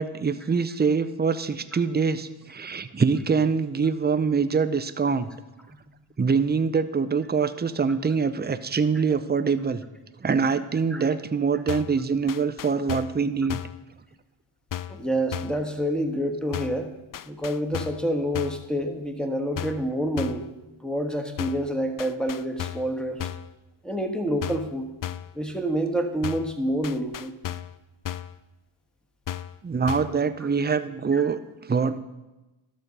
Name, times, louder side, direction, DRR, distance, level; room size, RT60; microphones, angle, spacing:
voice 1, 0.0-5.3 6.2-9.8 10.2-13.6 29.6-32.0, right 5 dB, 20° right, 12 dB, 0.6 m, -24 dB
sound 1, 11.7-12.0 12.3-13.2 13.5-13.8 14.7-15.0 15.3-15.6 16.5-16.8 17.1-18.1 18.3-18.7 19.6-19.9 20.2-20.5 21.4-21.7 22.0-22.9 23.2-23.5 24.4-24.7 25.0-25.3 26.2-26.6 26.8-27.8 28.0-28.4 29.3-29.6 29.9-30.2, left 11 dB, 45° left, 0.4 m, -34 dB
voice 2, 14.9-16.9 17.3-20.5 20.8-23.2 23.8-24.9 25.3-27.3 31.1-31.2, equal, ahead, 5 dB, 1.4 m, -27 dB
12.5 x 6.3 x 5.3 m, 1.1 s
cardioid pair, 65°, 49 cm